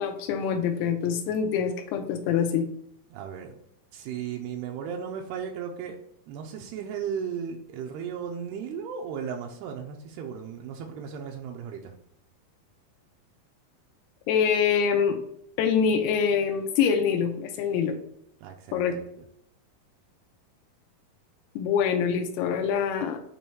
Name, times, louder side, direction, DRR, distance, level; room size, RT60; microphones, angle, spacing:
voice 1, 0.0-2.6 14.3-15.2 15.6-18.0 18.7-19.0 21.6-23.2, left 7 dB, 90° left, 4 dB, 2.6 m, -25 dB
voice 2, 3.1-3.5 3.9-6.0 6.3-11.9 18.4-19.1, right 7 dB, 85° right, 1 dB, 2.6 m, -35 dB
7.1 x 3.1 x 4.5 m, 0.72 s
omnidirectional pair, 4.5 m